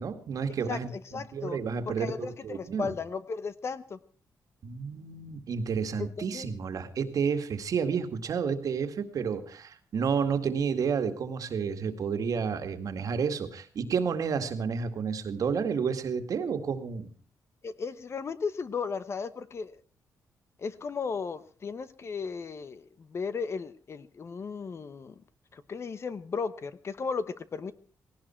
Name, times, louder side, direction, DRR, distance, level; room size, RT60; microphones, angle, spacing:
voice 1, 0.0-0.9 1.3-2.9 4.6-17.1, right 6 dB, 60° right, 8 dB, 2.1 m, -30 dB
voice 2, 0.7-1.6 1.9-4.0 6.0-6.5 17.6-19.8 20.6-25.2 25.5-27.7, left 5 dB, 40° left, 14 dB, 1.0 m, -35 dB
17.5 x 17.5 x 4.5 m, 0.40 s
wide cardioid pair, 130°, 7 cm